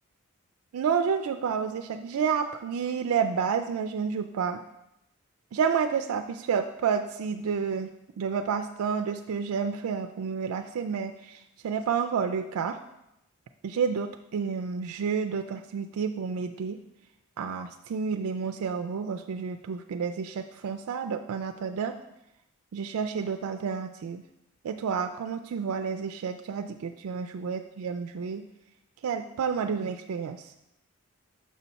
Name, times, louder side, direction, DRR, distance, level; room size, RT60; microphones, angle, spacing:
voice 1, 0.7-4.6 5.5-7.9 8.2-12.8 13.6-16.8 17.4-22.0 22.7-24.2 24.6-28.4 29.0-30.5, right 6 dB, 80° right, 6 dB, 0.3 m, -30 dB
6.2 x 5.5 x 4.1 m, 0.85 s
head